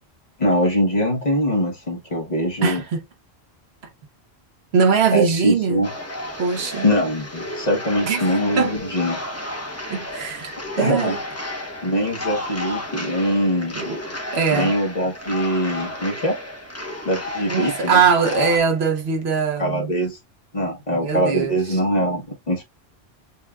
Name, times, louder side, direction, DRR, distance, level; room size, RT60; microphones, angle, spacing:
voice 1, 0.4-2.8 5.1-5.9 6.8-9.2 10.8-11.2 11.8-13.8 14.5-16.3 17.0-18.0 19.6-20.2 20.5-22.6, equal, 40° left, 1.1 m, -22 dB
voice 2, 2.6-3.0 4.7-5.8 6.4-6.9 8.0-8.2 8.6-8.7 9.9-11.2 13.7-14.0 14.3-14.7 17.5-19.9 20.9-21.8, right 6 dB, 75° right, 1.1 m, -21 dB
sound 1, 5.8-18.6, left 1 dB, 15° left, 0.8 m, -32 dB
6.9 x 2.3 x 2.3 m
omnidirectional pair, 1.1 m